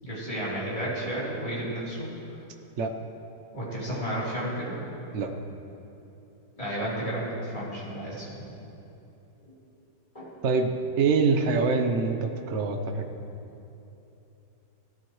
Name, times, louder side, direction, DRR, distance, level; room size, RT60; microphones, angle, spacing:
voice 1, 0.0-2.1 3.5-4.7 6.6-8.5 10.1-10.3, right 1 dB, 20° left, -9 dB, 3.8 m, -32 dB
voice 2, 11.0-13.0, right 4 dB, 50° right, 5 dB, 1.0 m, -24 dB
18.5 x 13.0 x 3.2 m, 3.0 s
omnidirectional pair, 1.9 m